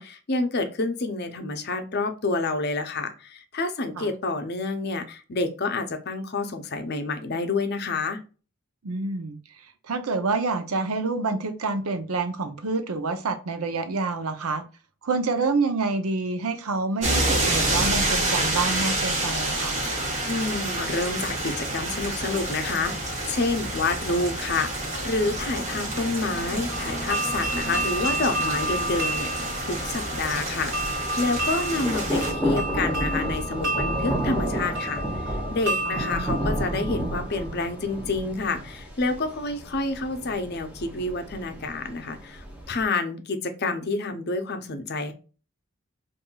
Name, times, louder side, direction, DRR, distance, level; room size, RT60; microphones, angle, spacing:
voice 1, 0.0-8.2 20.3-45.1, left 3 dB, 45° left, 0.6 m, -28 dB
voice 2, 8.8-14.6 15.0-19.8 35.9-36.4, right 3 dB, 85° right, 0.6 m, -28 dB
sound 1, 17.0-32.3, right 1 dB, 30° right, 1.1 m, -28 dB
sound 2, 26.1-42.8, equal, 5° right, 0.9 m, -33 dB
bronze glocke, 26.7-37.5, right 1 dB, 55° right, 1.6 m, -31 dB
5.4 x 2.6 x 2.3 m
head